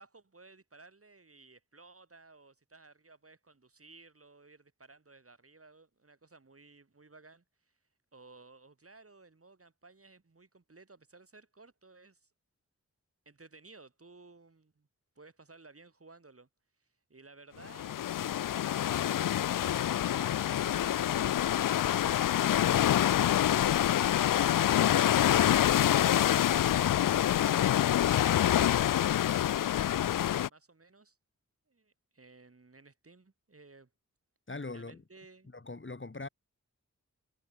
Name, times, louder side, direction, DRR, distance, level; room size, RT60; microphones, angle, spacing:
voice 1, 0.0-7.7 8.1-12.3 13.2-14.9 15.1-16.5 16.8-22.9 23.7-24.7 26.5-28.0 28.3-31.2 31.7-33.9 34.7-35.5, right 3 dB, 45° right, 6.8 m, -57 dB
sound 1, 17.6-30.5, left 11 dB, 85° left, 0.5 m, -26 dB
voice 2, 34.5-35.0 35.5-36.3, left 3 dB, 40° left, 4.7 m, -41 dB
cardioid pair, 45°, 32 cm